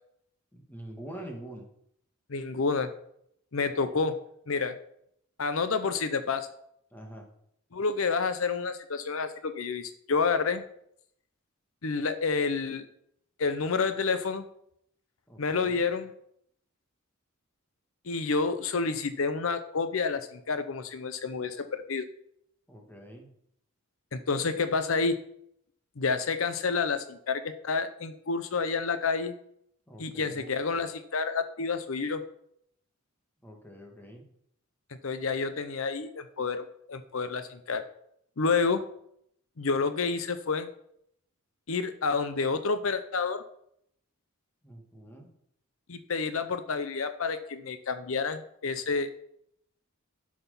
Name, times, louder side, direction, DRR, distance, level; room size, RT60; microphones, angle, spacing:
voice 1, 0.5-1.7 3.8-3.9 6.9-7.3 15.3-15.8 22.7-23.3 29.9-30.5 33.4-34.2 44.6-45.3, right 1 dB, 10° left, 1 dB, 1.9 m, -45 dB
voice 2, 2.3-2.9 3.5-4.2 4.5-4.8 5.4-6.5 7.7-10.6 11.8-12.8 13.4-14.4 15.4-16.1 18.1-22.1 24.1-25.2 26.0-29.3 30.0-32.2 35.0-37.8 38.4-38.8 39.6-40.7 41.7-43.4 45.9-49.2, left 4 dB, 70° left, 10 dB, 0.7 m, -29 dB
11.0 x 6.2 x 5.5 m, 0.71 s
head